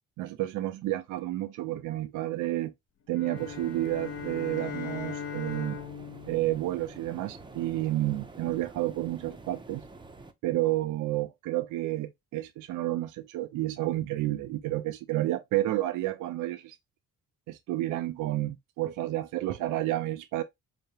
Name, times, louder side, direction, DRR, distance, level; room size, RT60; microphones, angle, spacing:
voice 1, 0.2-2.7 3.1-5.8 6.3-9.8 10.4-16.8 17.5-20.4, right 15 dB, 85° right, 0.5 m, -30 dB
sound 1, 3.1-7.6, left 7 dB, 50° left, 0.8 m, -40 dB
sound 2, 3.3-10.3, right 3 dB, 15° right, 0.6 m, -48 dB
5.0 x 2.2 x 2.8 m
cardioid pair, 90°, 30 cm